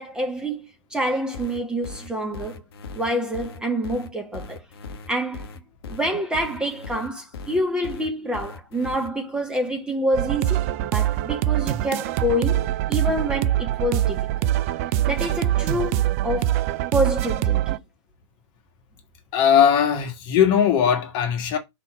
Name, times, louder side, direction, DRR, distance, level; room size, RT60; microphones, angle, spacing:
voice 1, 0.0-2.6 2.9-4.6 5.1-5.5 5.9-14.5 15.1-16.7 16.9-17.8, equal, 5° right, 1.5 m, -27 dB
sound 1, 1.3-9.1, left 4 dB, 50° left, 1.1 m, -38 dB
sound 2, 10.1-17.8, right 13 dB, 25° right, 0.5 m, -23 dB
voice 2, 19.3-21.6, left 8 dB, 25° left, 1.7 m, -19 dB
5.1 x 4.3 x 6.0 m
figure-of-eight pair, 125°, 17 cm